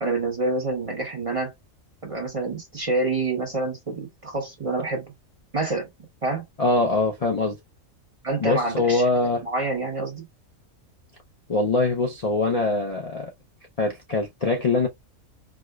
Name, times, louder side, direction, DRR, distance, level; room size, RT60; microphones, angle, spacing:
voice 1, 0.0-1.5 2.0-5.1 5.5-5.9 6.2-6.4 8.2-9.1 9.4-10.2, right 2 dB, 30° right, 0.8 m, -27 dB
voice 2, 6.6-7.6 8.4-9.4 11.5-13.3 13.8-14.9, left 2 dB, 50° left, 0.4 m, -23 dB
4.6 x 2.0 x 2.3 m
omnidirectional pair, 1.5 m